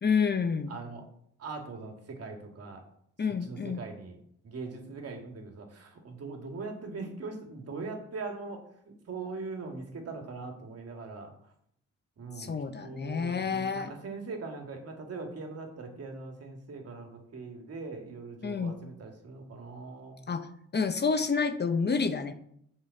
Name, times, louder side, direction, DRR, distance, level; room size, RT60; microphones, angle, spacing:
voice 1, 0.0-0.7 3.2-3.8 12.4-13.9 18.4-18.8 20.3-20.5 20.7-22.3, left 5 dB, 35° left, 9 dB, 1.0 m, -29 dB
voice 2, 0.7-1.0 1.4-2.8 3.4-4.2 4.4-11.5 12.2-12.5 12.8-20.2, right 3 dB, 55° right, 3 dB, 2.6 m, -41 dB
7.6 x 5.9 x 7.2 m, 0.69 s
cardioid pair, 90°, 30 cm